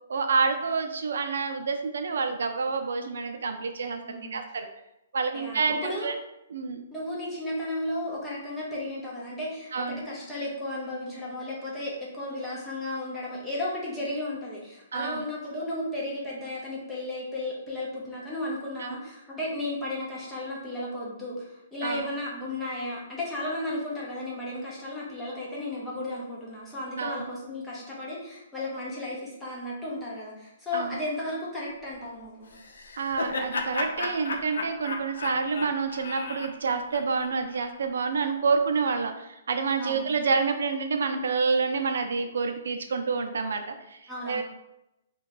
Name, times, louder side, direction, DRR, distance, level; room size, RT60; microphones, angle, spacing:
voice 1, 0.1-4.0 4.3-4.7 5.1-5.7 6.0-6.1 6.5-6.8 9.7-10.1 14.9-15.2 18.8-18.9 21.8-22.1 27.0-27.3 30.7-31.0 33.0-44.0 44.3-44.4, right 5 dB, 75° right, 6 dB, 0.4 m, -28 dB
voice 2, 5.3-6.1 6.9-32.5 39.8-40.1 44.1-44.4, left 1 dB, 5° left, -6 dB, 0.5 m, -34 dB
Laughter, 32.5-37.7, left 3 dB, 80° left, 0.4 m, -34 dB
2.6 x 2.2 x 3.9 m, 0.87 s
hypercardioid pair, 180°, 0 cm